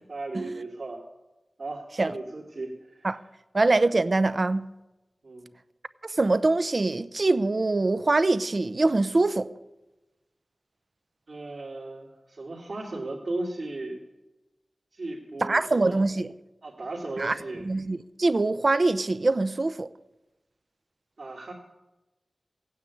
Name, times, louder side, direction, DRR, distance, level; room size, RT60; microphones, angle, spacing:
voice 1, 0.1-1.0 1.6-3.1 5.2-5.5 11.3-14.0 14.9-16.0 16.6-17.6 21.2-21.5, right 2 dB, 75° right, 2.7 m, -36 dB
voice 2, 3.5-4.7 6.0-9.5 15.4-16.3 17.2-17.4 17.6-19.9, right 2 dB, 55° right, 0.7 m, -24 dB
16.5 x 9.5 x 8.4 m
cardioid pair, 50°, 0 cm